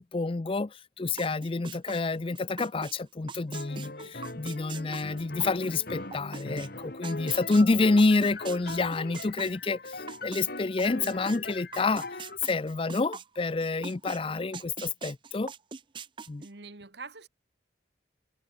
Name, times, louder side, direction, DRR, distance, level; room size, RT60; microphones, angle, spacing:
voice 1, 0.0-15.5 16.3-16.4, left 3 dB, 30° left, 0.5 m, -28 dB
sound 1, 1.2-2.9 3.3-10.4 10.8-14.2 14.5-16.5, right 5 dB, 25° right, 0.5 m, -42 dB
sound 2, 3.5-12.4, left 2 dB, 55° left, 3.2 m, -41 dB
voice 2, 3.8-4.2 16.4-17.3, right 4 dB, 60° right, 1.6 m, -46 dB
head